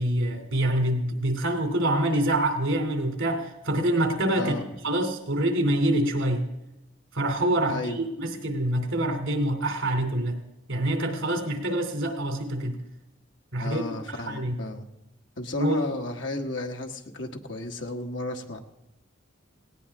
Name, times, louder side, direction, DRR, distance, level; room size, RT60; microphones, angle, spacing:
voice 1, 0.0-4.5 4.8-6.5 7.1-10.4 10.7-12.8 13.5-13.8 14.1-14.6 15.6-15.8, right 1 dB, 90° right, 5 dB, 2.8 m, -26 dB
voice 2, 4.4-4.7 7.7-8.0 13.6-14.9 15.4-18.6, left 1 dB, 65° left, 3 dB, 1.5 m, -33 dB
18.5 x 18.0 x 3.6 m, 0.94 s
head